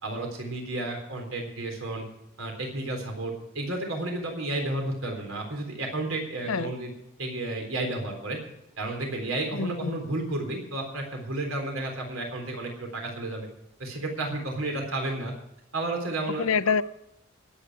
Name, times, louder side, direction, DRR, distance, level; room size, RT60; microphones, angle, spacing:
voice 1, 0.0-2.0 2.4-6.9 7.2-8.4 8.8-13.5 13.8-15.3 15.7-16.5, right 2 dB, 85° right, 3 dB, 3.8 m, -32 dB
voice 2, 9.5-10.0 16.4-16.8, left 5 dB, 90° left, 16 dB, 0.6 m, -26 dB
21.5 x 9.0 x 4.8 m, 0.81 s
head